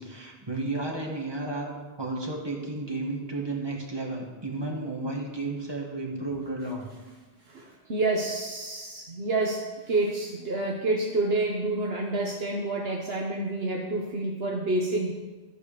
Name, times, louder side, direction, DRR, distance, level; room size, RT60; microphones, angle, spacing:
voice 1, 0.0-1.7 2.0-6.8, right 2 dB, 25° right, 0 dB, 1.6 m, -33 dB
voice 2, 7.5-15.1, right 2 dB, 70° right, -1 dB, 1.3 m, -28 dB
13.5 x 4.8 x 6.8 m, 1.3 s
omnidirectional pair, 1.1 m